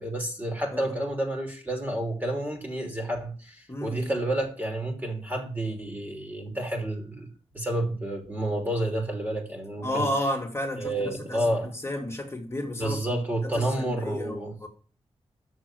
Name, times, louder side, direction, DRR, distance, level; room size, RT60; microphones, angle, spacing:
voice 1, 0.0-10.1 10.8-11.7 12.8-14.5, right 1 dB, 15° right, 2.9 m, -30 dB
voice 2, 3.7-4.1 9.8-11.5 11.8-14.7, left 1 dB, 25° left, 2.2 m, -32 dB
6.7 x 6.6 x 7.6 m
wide cardioid pair, 105°, 11 cm